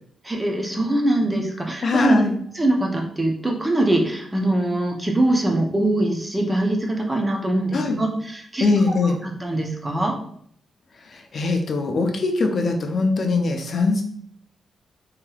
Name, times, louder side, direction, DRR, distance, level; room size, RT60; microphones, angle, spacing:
voice 1, 0.2-2.2 2.6-8.7 9.2-10.1, right 1 dB, 15° right, 1 dB, 0.5 m, -22 dB
voice 2, 1.8-2.3 7.7-8.0 8.6-9.2 11.0-14.0, left 3 dB, 45° left, 4 dB, 0.5 m, -21 dB
3.2 x 2.8 x 2.3 m, 0.64 s
wide cardioid pair, 145°, 0 cm